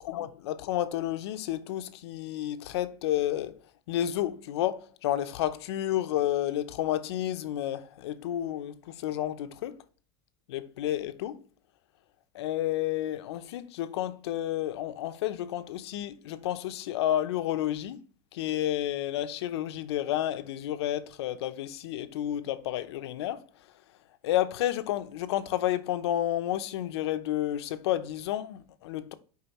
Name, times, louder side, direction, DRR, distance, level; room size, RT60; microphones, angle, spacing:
voice 1, 0.0-3.6 3.9-9.8 10.5-11.4 12.3-18.0 18.3-23.4 24.2-29.1, left 12 dB, 85° left, 0.7 m, -31 dB
6.7 x 4.9 x 3.0 m
supercardioid pair, 150°, 13 cm